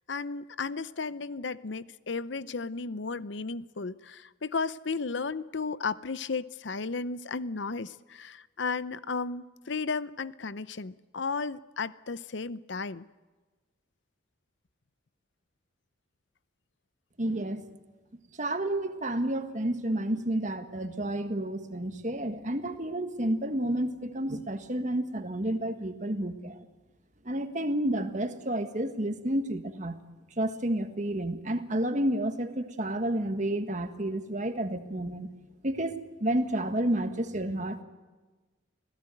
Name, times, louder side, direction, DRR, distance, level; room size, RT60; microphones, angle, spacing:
voice 1, 0.1-13.0, left 4 dB, 65° left, 16 dB, 0.7 m, -34 dB
voice 2, 17.2-17.6 18.4-26.6 27.2-30.0 30.4-35.3 35.6-37.8, right 1 dB, 40° right, 8 dB, 1.7 m, -30 dB
26.0 x 17.0 x 9.1 m, 1.3 s
head